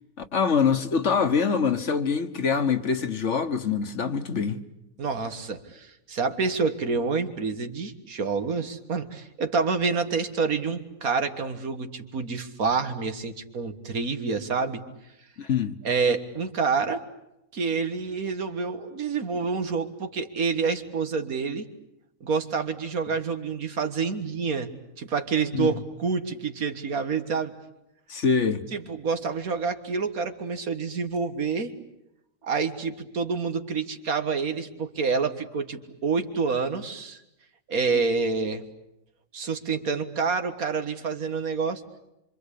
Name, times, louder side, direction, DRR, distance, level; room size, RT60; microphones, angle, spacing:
voice 1, 0.3-4.6 15.4-15.7 25.5-25.7 28.1-28.6, left 6 dB, 55° left, 1.6 m, -24 dB
voice 2, 5.0-14.8 15.8-17.0 17.5-21.7 22.2-24.7 25.0-27.5 28.7-31.7 32.4-37.2 37.7-38.6 39.3-41.8, right 5 dB, 85° right, 2.1 m, -28 dB
26.5 x 25.5 x 8.5 m
omnidirectional pair, 1.5 m